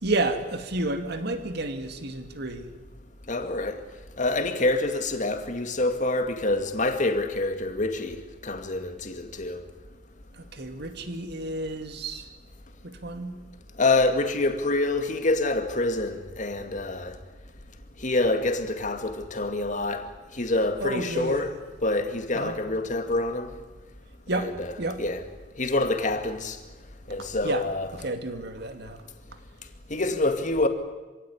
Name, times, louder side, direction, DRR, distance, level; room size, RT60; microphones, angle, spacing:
voice 1, 0.0-2.7 10.3-12.3 12.8-13.4 20.8-21.5 22.3-22.6 24.3-24.5 24.8-25.0 27.4-27.6 27.9-29.0, right 2 dB, 60° right, 2.5 m, -31 dB
voice 2, 3.3-3.8 4.2-8.2 8.4-9.6 13.8-17.1 18.0-20.0 20.3-21.5 21.8-23.5 24.3-24.7 25.0-25.2 25.6-26.6 27.1-27.9 29.9-30.7, left 2 dB, 40° left, 2.1 m, -26 dB
26.0 x 16.5 x 9.9 m
head